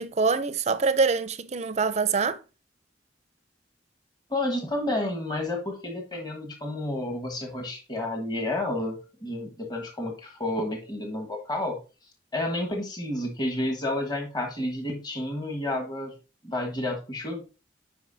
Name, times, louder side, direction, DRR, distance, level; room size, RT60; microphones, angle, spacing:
voice 1, 0.0-2.4, right 4 dB, 35° right, 0.5 m, -25 dB
voice 2, 4.3-11.8 12.3-16.2 16.4-17.4, left 1 dB, 20° left, 1.3 m, -30 dB
9.2 x 5.4 x 2.7 m
head